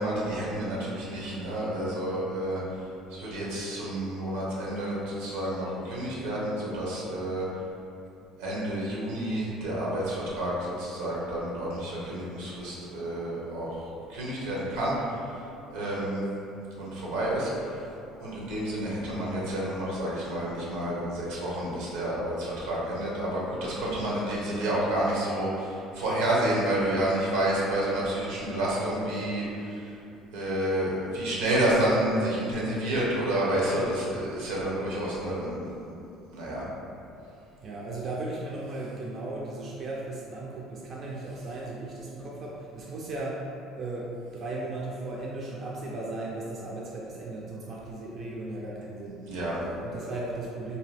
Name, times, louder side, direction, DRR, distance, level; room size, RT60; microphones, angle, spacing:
voice 1, 0.0-2.6 3.1-7.4 8.4-13.8 14.1-16.2 16.7-17.9 18.2-30.0 30.3-35.7 36.3-36.7 49.3-49.6, right 1 dB, 90° right, -6 dB, 0.8 m, -29 dB
voice 2, 37.6-49.2 49.6-50.8, right 2 dB, 45° right, -4 dB, 0.4 m, -36 dB
2.7 x 2.2 x 3.2 m, 2.7 s
supercardioid pair, 100°, 0 cm